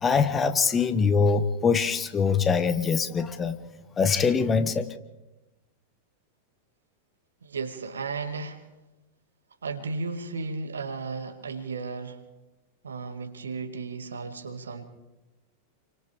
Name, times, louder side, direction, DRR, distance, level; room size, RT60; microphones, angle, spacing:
voice 1, 0.0-3.5 4.0-4.9, left 5 dB, 20° left, 9 dB, 1.4 m, -23 dB
voice 2, 7.4-8.6 9.6-12.2 12.8-14.8, right 4 dB, 70° right, 6 dB, 2.1 m, -34 dB
30.0 x 24.5 x 3.6 m, 1.0 s
figure-of-eight pair, 90°, 0 cm